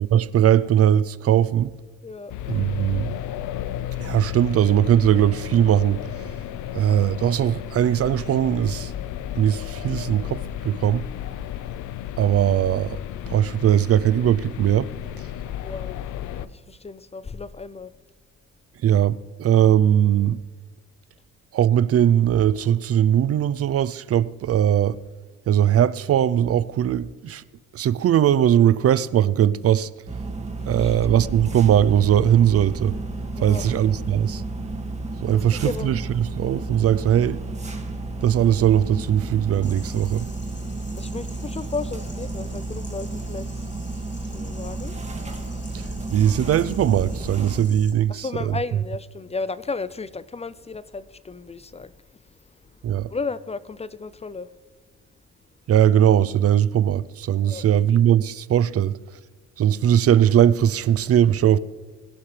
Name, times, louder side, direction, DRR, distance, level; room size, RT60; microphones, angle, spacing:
voice 1, 0.1-1.7 2.5-3.2 4.0-6.0 6.7-8.9 9.4-11.1 12.2-13.0 13.3-14.9 18.8-20.4 21.5-25.0 25.5-27.4 27.7-29.9 30.7-33.0 33.4-34.4 35.2-37.4 38.2-40.3 45.7-48.6 52.8-53.1 55.7-59.0 59.6-61.6, right 10 dB, 50° right, 0.5 m, -20 dB
voice 2, 2.0-2.3 15.6-16.0 16.4-17.9 30.8-31.0 33.3-33.7 35.6-35.9 41.0-43.7 44.3-45.0 48.1-52.2 53.1-54.5 57.4-57.6, left 4 dB, 20° left, 0.4 m, -34 dB
sound 1, 2.3-16.5, left 11 dB, 80° left, 0.6 m, -33 dB
sound 2, 30.1-47.6, right 2 dB, 20° right, 2.0 m, -32 dB
sound 3, 39.6-47.9, left 3 dB, 35° left, 3.1 m, -48 dB
20.5 x 11.5 x 3.3 m
cardioid pair, 90°, 30 cm